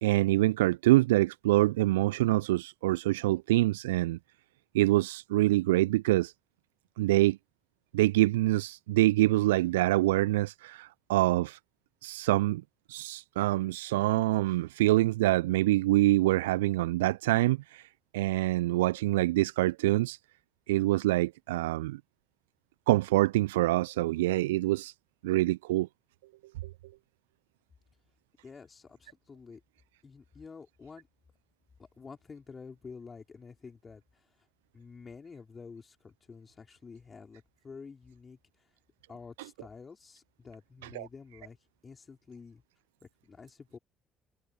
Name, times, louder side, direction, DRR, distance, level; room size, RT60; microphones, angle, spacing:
voice 1, 0.0-4.2 4.7-6.3 7.0-7.4 7.9-11.6 12.0-12.6 12.9-17.8 18.1-20.2 20.7-22.0 22.9-24.9 25.2-25.9 40.9-41.1, right 17 dB, 75° right, 0.7 m, -25 dB
voice 2, 28.4-29.6 30.0-31.1 31.8-34.5 34.7-38.7 39.1-41.6 41.8-42.6 43.0-43.8, left 5 dB, 30° left, 5.1 m, -49 dB
figure-of-eight pair, 50°, 0 cm